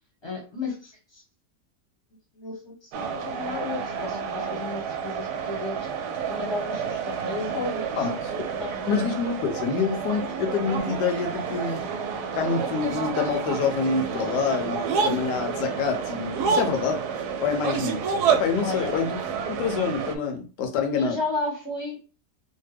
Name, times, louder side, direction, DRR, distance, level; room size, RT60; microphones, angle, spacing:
voice 1, 0.2-1.2 2.4-5.8 6.0-8.1 8.6-8.7 18.6-18.9 21.0-22.0, left 3 dB, 20° left, -2 dB, 0.8 m, -33 dB
sound 1, 2.9-20.2, right 6 dB, 75° right, 1.0 m, -29 dB
voice 2, 8.0-8.3 8.9-11.8 12.3-17.0 17.4-19.2 19.6-21.2, left 5 dB, 85° left, 4 dB, 1.3 m, -27 dB
3.2 x 2.1 x 3.3 m, 0.35 s
omnidirectional pair, 1.8 m